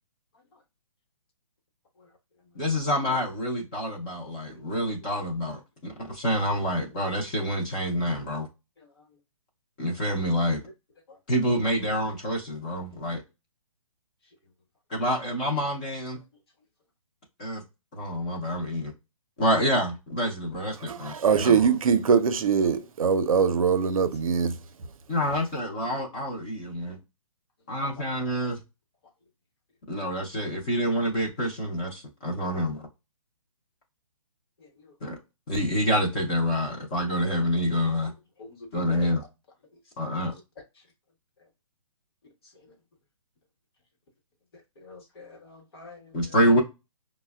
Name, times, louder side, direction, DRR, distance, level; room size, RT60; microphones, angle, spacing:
voice 1, 2.5-8.5 9.8-10.6 11.3-13.2 14.9-16.2 17.4-17.6 17.9-18.9 19.4-21.6 25.1-27.0 27.7-28.6 29.9-32.9 35.0-35.2 35.5-38.1 38.7-39.2 40.0-40.3 46.1-46.6, equal, 15° left, 0.4 m, -27 dB
voice 2, 20.9-24.6, right 6 dB, 70° right, 0.5 m, -22 dB
voice 3, 38.4-39.1 44.8-46.1, left 3 dB, 45° left, 0.9 m, -45 dB
5.3 x 2.0 x 2.2 m
hypercardioid pair, 170°, 18 cm